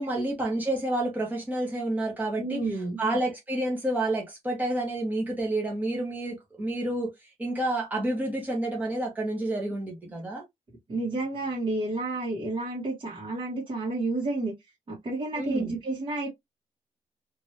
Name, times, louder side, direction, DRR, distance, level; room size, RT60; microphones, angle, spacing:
voice 1, 0.0-2.6 3.0-7.1 7.4-10.4 15.4-15.7, right 1 dB, 10° right, 1.1 m, -29 dB
voice 2, 2.4-3.0 10.9-14.5 14.9-16.3, right 2 dB, 40° right, 1.3 m, -30 dB
3.2 x 2.6 x 2.8 m
wide cardioid pair, 180°, 14 cm